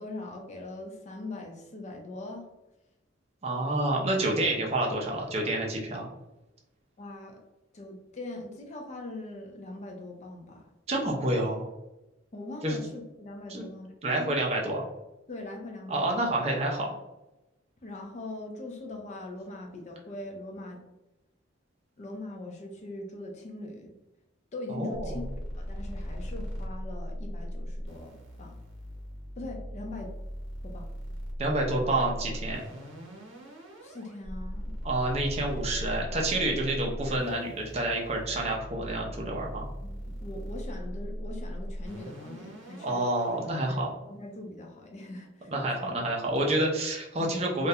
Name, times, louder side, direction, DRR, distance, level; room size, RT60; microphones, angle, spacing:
voice 1, 0.0-2.5 7.0-7.4 7.7-10.6 12.3-14.4 15.3-16.2 17.8-20.8 22.0-23.9 24.5-25.3 25.6-28.6 29.4-30.1 30.6-30.9 33.8-34.7 39.8-43.0 43.6-45.5, left 2 dB, 35° left, 2 dB, 0.4 m, -41 dB
voice 2, 3.4-6.1 10.9-11.7 12.6-12.8 13.5-13.6 14.0-14.8 15.9-16.9 24.7-25.2 31.4-32.6 34.8-39.7 42.8-43.9 45.5-47.7, right 1 dB, 30° right, -1 dB, 0.4 m, -28 dB
sound 1, 25.0-43.5, equal, 70° right, 0.7 m, -39 dB
2.3 x 2.1 x 2.7 m, 0.98 s
head